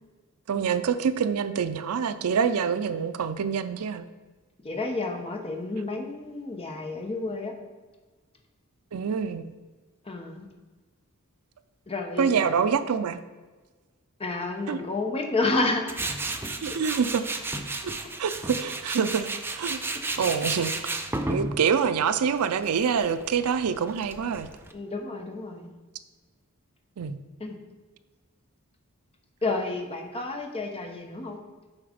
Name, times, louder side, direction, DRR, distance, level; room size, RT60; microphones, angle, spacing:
voice 1, 0.5-4.1 8.9-9.5 12.2-13.2 14.7-14.8 16.6-17.2 17.8-17.9 18.2-19.3 19.6-19.8 20.2-21.0 21.3-24.5 27.0-27.2, right 6 dB, 80° right, 11 dB, 0.4 m, -26 dB
voice 2, 4.6-7.5 10.1-10.5 11.9-12.6 14.2-15.9 16.6-16.7 24.7-25.7 27.4-27.6 29.4-31.4, left 2 dB, 25° left, 3 dB, 0.8 m, -30 dB
Tools, 15.9-24.7, right 2 dB, 10° right, 0.4 m, -33 dB
7.3 x 4.8 x 5.0 m, 1.3 s
head